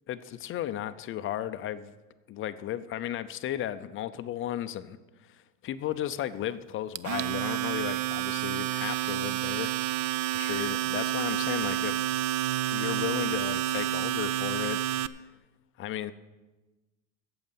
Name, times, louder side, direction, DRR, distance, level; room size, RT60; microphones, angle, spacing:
voice 1, 0.1-1.9 2.3-9.8 10.3-12.2 12.6-14.8 15.1-15.3 15.8-16.1, left 12 dB, 30° left, 12 dB, 0.5 m, -35 dB
Domestic sounds home sounds, 6.9-15.1, right 13 dB, 50° right, 0.5 m, -29 dB
8.5 x 7.8 x 9.1 m, 1.1 s
supercardioid pair, 125°, 40 cm